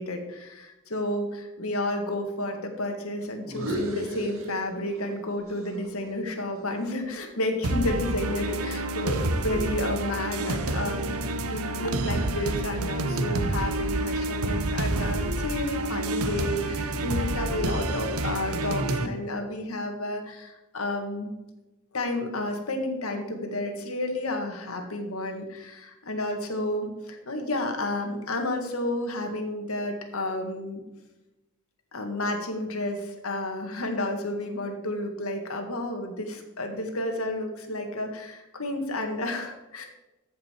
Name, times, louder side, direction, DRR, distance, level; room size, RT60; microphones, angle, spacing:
voice 1, 0.0-21.3 21.9-30.8 31.9-39.8, left 1 dB, 80° left, 4 dB, 1.8 m, -31 dB
sound 1, 3.4-5.2 5.5-7.7, equal, 70° right, 2.0 m, -36 dB
sound 2, 7.6-19.1, right 2 dB, 90° right, 0.9 m, -28 dB
14.0 x 5.6 x 4.5 m, 1.0 s
head